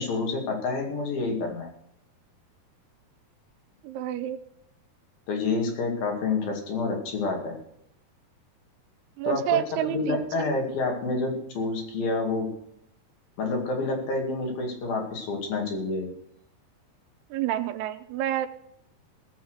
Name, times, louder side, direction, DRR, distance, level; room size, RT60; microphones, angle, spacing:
voice 1, 0.0-1.7 5.3-7.6 9.2-9.6 9.9-12.5 13.4-16.1, left 3 dB, 60° left, 2 dB, 4.0 m, -28 dB
voice 2, 3.8-4.4 9.2-10.6 17.3-18.5, right 12 dB, 85° right, 10 dB, 2.8 m, -29 dB
17.5 x 7.2 x 6.5 m, 0.74 s
omnidirectional pair, 4.7 m